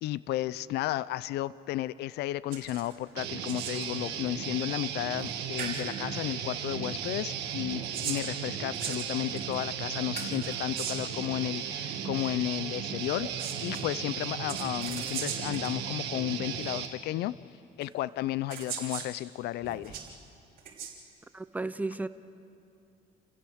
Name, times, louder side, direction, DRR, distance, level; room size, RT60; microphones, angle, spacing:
voice 1, 0.0-13.3 13.6-17.4 17.8-20.0, left 15 dB, 75° left, 19 dB, 0.5 m, -33 dB
sound 1, 2.5-2.9 3.2-3.9 5.2-5.3 5.6-5.8 7.6-9.5 10.1-11.2 13.1-13.8 14.5-15.7 16.6-16.7 17.8-17.9 18.5-19.1 19.6-20.1 20.6-20.9, right 7 dB, 55° right, 3.5 m, -39 dB
Guitar, 3.2-16.9, right 8 dB, 90° right, 1.7 m, -36 dB
voice 2, 21.3-22.1, right 2 dB, 10° right, 12 dB, 0.7 m, -33 dB
28.5 x 16.0 x 6.4 m, 2.7 s
cardioid pair, 110°, 17 cm